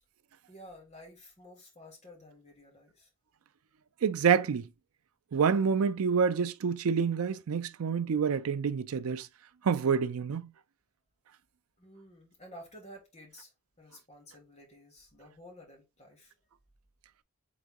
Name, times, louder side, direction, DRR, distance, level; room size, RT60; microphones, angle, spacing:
voice 1, 0.5-3.1 11.8-13.5 13.8-16.3, equal, 30° left, 2.0 m, -52 dB
voice 2, 4.0-4.7 5.3-9.3 9.6-10.5, right 6 dB, 75° right, 0.4 m, -27 dB
4.0 x 3.6 x 3.6 m
head